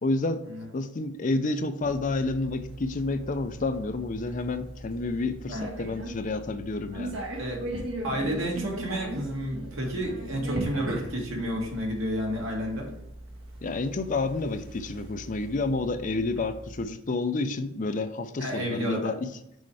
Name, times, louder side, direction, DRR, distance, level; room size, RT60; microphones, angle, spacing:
voice 1, 0.0-0.4 0.7-7.2 13.6-19.3, left 3 dB, 40° left, 9 dB, 0.5 m, -29 dB
sound 1, 1.8-16.8, right 1 dB, 70° right, 1.3 m, -39 dB
voice 2, 8.0-12.9 18.4-19.1, equal, 85° right, -1 dB, 1.9 m, -31 dB
6.3 x 4.4 x 4.8 m, 0.81 s
head